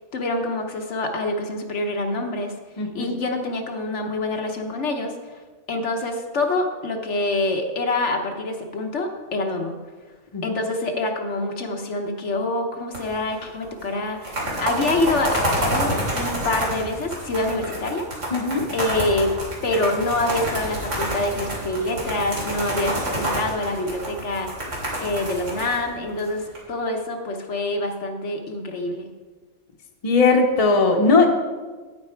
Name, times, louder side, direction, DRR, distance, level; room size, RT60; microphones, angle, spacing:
voice 1, 0.1-2.5 2.9-5.4 5.7-9.7 10.4-18.2 18.7-19.3 19.6-24.6 25.0-29.1, left 2 dB, 65° left, 3 dB, 1.3 m, -26 dB
voice 2, 2.8-3.1 10.3-10.6 18.3-18.6 30.0-31.3, left 3 dB, 30° left, 2 dB, 1.0 m, -18 dB
sound 1, 12.9-13.4 13.6-13.7 14.1-26.6, right 1 dB, 75° right, 3.1 m, -28 dB
9.5 x 8.9 x 4.4 m, 1.4 s
omnidirectional pair, 1.3 m